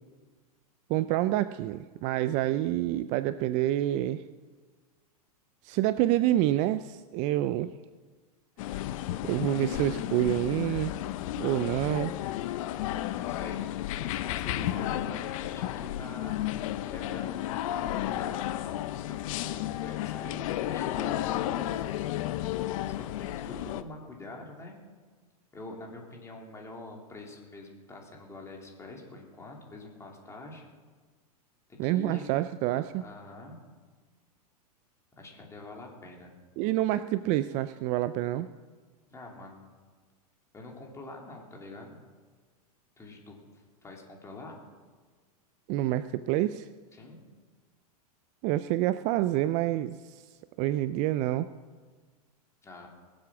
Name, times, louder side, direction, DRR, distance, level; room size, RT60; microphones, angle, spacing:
voice 1, 0.9-4.2 5.6-7.7 9.2-11.0 11.4-12.1 31.8-33.1 36.6-38.5 45.7-46.7 48.4-50.2 50.6-51.5, right 14 dB, 40° right, 14 dB, 0.4 m, -27 dB
sound 1, 8.6-23.8, left 13 dB, 55° left, 0.7 m, -33 dB
voice 2, 13.3-13.7 13.9-18.7 19.1-22.1 22.5-24.8 25.5-30.7 31.7-32.2 33.0-33.6 35.1-36.3 39.1-39.7 40.5-42.0 43.0-44.6 46.9-47.2 52.6-52.9, left 2 dB, 15° left, 0 dB, 2.8 m, -45 dB
20.0 x 7.7 x 6.0 m, 1.4 s
hypercardioid pair, 130°, 20 cm